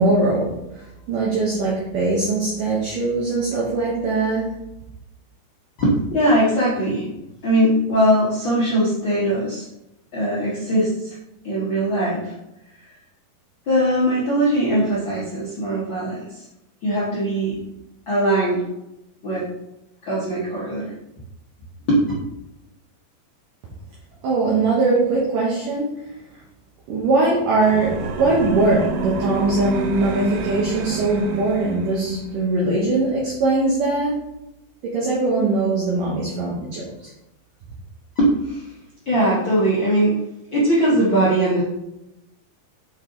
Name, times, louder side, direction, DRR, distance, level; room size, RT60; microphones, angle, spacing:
voice 1, 0.0-4.5 24.2-25.9 26.9-34.2 34.8-37.1, right 3 dB, 65° right, -5 dB, 2.5 m, -21 dB
voice 2, 5.8-7.1 7.4-9.6 10.1-11.2 11.4-12.3 13.7-16.5 16.8-17.6 18.1-18.6 19.2-19.4 20.0-20.9 21.9-22.0 38.1-38.7 39.0-40.2 40.5-41.6, right 1 dB, 75° left, -8 dB, 1.1 m, -20 dB
sound 1, 27.6-32.3, right 4 dB, 85° right, 3.0 m, -29 dB
6.5 x 5.2 x 3.9 m, 0.88 s
omnidirectional pair, 4.7 m